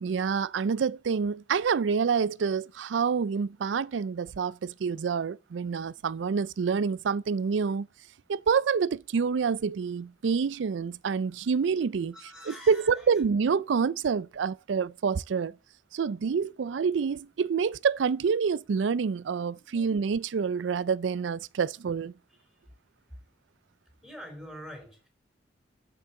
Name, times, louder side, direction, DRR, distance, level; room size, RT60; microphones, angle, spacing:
voice 1, 0.0-7.9 8.3-12.1 12.5-15.6 15.9-22.1, right 6 dB, 85° right, 0.4 m, -27 dB
voice 2, 12.1-13.1 19.5-19.9 22.3-22.6 24.0-25.1, equal, ahead, 4.1 m, -46 dB
7.6 x 6.3 x 6.9 m
head